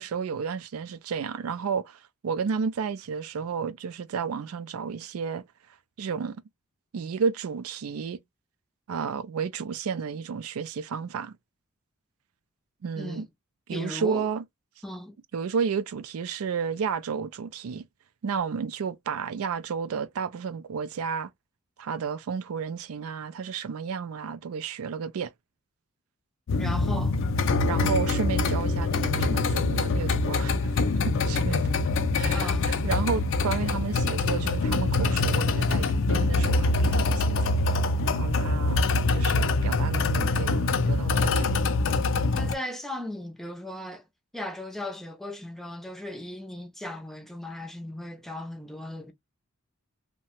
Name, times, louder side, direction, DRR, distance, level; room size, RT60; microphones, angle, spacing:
voice 1, 0.0-5.4 6.0-6.4 6.9-8.2 8.9-11.4 12.8-13.2 13.7-14.4 15.3-17.8 18.2-21.3 21.8-25.3 27.6-30.7 31.0-31.7 32.1-37.5 38.1-38.8 39.1-41.6, right 6 dB, 80° right, 0.4 m, -32 dB
voice 2, 13.7-14.3 14.8-15.2 26.6-27.2 32.3-32.7 42.3-44.0 44.3-49.1, left 1 dB, ahead, 0.5 m, -37 dB
sound 1, 26.5-42.5, left 3 dB, 60° left, 0.4 m, -24 dB
2.8 x 2.1 x 2.9 m
head